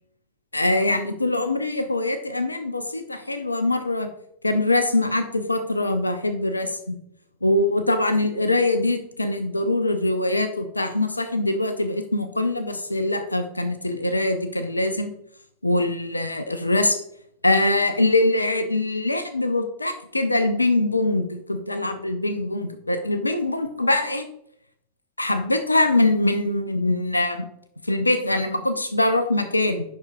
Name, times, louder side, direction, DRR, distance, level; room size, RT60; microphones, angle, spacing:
voice 1, 0.5-4.1 4.4-7.0 7.4-15.1 15.6-17.0 17.4-24.3 25.2-27.5 27.9-29.8, left 2 dB, 85° left, 8 dB, 0.6 m, -23 dB
8.4 x 5.9 x 2.3 m, 0.73 s
figure-of-eight pair, 90°, 0 cm